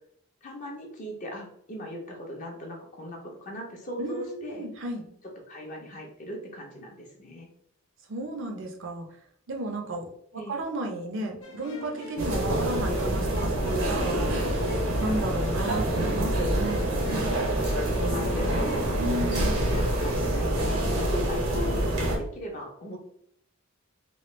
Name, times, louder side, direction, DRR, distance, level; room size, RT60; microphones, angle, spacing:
voice 1, 0.4-4.6 5.5-7.5 10.3-10.6 17.9-19.0 19.9-20.3 20.7-23.0, equal, 35° left, 0 dB, 0.6 m, -38 dB
voice 2, 4.0-5.0 8.1-9.1 9.5-10.1 10.3-14.2 15.0-17.0 19.0-19.8, right 1 dB, 60° right, 3 dB, 0.6 m, -33 dB
sound 1, 11.4-21.1, left 3 dB, 85° left, 0.7 m, -41 dB
sound 2, 12.2-22.2, right 1 dB, 85° right, 0.9 m, -26 dB
3.0 x 2.3 x 3.1 m, 0.68 s
head